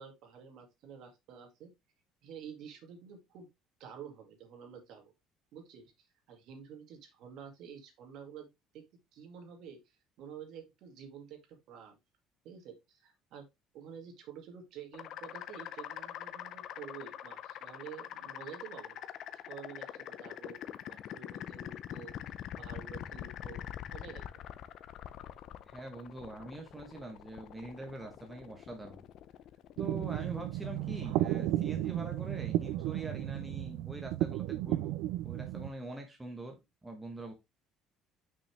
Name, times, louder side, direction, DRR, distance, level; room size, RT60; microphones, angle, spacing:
voice 1, 0.0-1.7 2.2-3.5 3.8-5.1 5.5-5.9 6.3-8.8 9.1-9.8 10.2-11.4 11.7-12.0 12.4-13.5 13.7-19.0 19.5-20.6 20.9-22.1 22.6-23.6 23.9-24.5, right 7 dB, 55° right, 5 dB, 2.1 m, -49 dB
sound 1, 14.9-33.7, left 11 dB, 45° left, 0.5 m, -45 dB
voice 2, 25.7-29.0 29.8-35.0 35.2-37.3, right 1 dB, 5° right, 2 dB, 1.1 m, -44 dB
sound 2, 29.8-35.7, right 15 dB, 80° right, 0.5 m, -34 dB
6.4 x 5.7 x 3.3 m, 0.22 s
cardioid pair, 180°, 0 cm